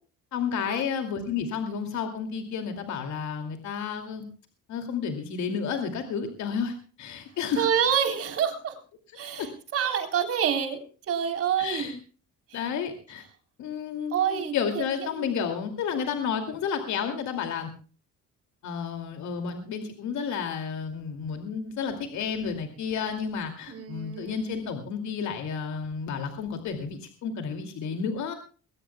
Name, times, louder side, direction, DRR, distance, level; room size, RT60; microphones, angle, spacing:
voice 1, 0.3-4.2 4.7-7.7 9.4-9.5 11.6-12.0 12.5-13.2 13.6-17.7 18.6-28.3, left 6 dB, 65° left, 6 dB, 2.5 m, -31 dB
voice 2, 7.6-8.8 9.2-11.9 14.1-14.8 15.2-15.3 23.7-24.7, right 8 dB, 50° right, 5 dB, 3.7 m, -28 dB
21.5 x 18.5 x 2.2 m, 0.38 s
cardioid pair, 180°, 31 cm